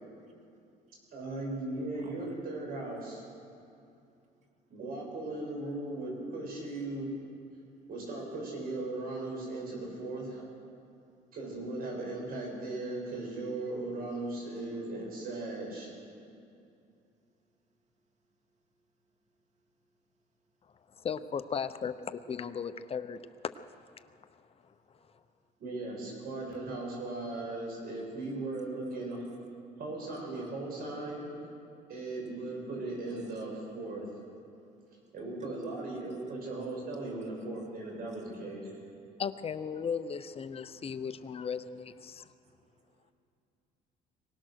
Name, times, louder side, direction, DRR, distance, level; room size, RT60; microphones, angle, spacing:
voice 1, 1.1-3.2 4.7-7.1 7.9-10.4 11.3-15.9 25.6-29.2 29.8-31.3 31.9-34.0 35.1-38.7, right 2 dB, 60° right, -1 dB, 7.4 m, -38 dB
voice 2, 2.0-2.3 34.6-35.1 42.1-42.2 42.4-43.1, right 4 dB, 45° right, 4 dB, 2.5 m, -57 dB
voice 3, 21.0-23.8 24.4-24.7 39.2-42.3, left 6 dB, 35° left, 11 dB, 0.8 m, -37 dB
23.5 x 18.0 x 6.5 m, 2.6 s
cardioid pair, 110°, 17 cm